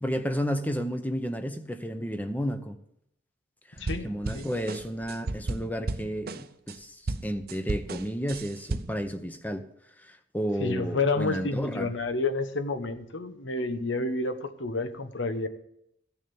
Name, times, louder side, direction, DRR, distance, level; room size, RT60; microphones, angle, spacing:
voice 1, 0.0-2.8 3.7-9.7 10.0-11.9, equal, 10° left, 8 dB, 0.8 m, -32 dB
voice 2, 3.8-4.6 10.5-15.5, left 3 dB, 85° left, 10 dB, 1.1 m, -30 dB
sound 1, 3.8-6.8 7.1-9.1, right 2 dB, 50° right, 0.6 m, -34 dB
14.5 x 7.2 x 7.0 m, 0.75 s
head